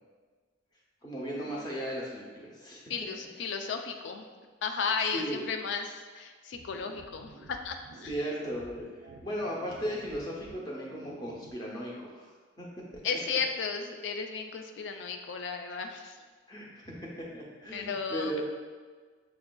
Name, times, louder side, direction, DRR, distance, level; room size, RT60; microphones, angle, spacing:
voice 1, 1.0-2.8 5.1-5.4 8.1-12.3 12.6-12.7 13.1-13.2 16.5-18.4, equal, 20° left, -4 dB, 0.6 m, -36 dB
voice 2, 2.9-4.3 4.6-8.1 13.0-16.2 17.7-18.4, left 5 dB, 60° left, 5 dB, 0.3 m, -34 dB
sound 1, 6.5-11.5, right 3 dB, 75° right, 0.3 m, -51 dB
5.9 x 2.4 x 2.2 m, 1.5 s
head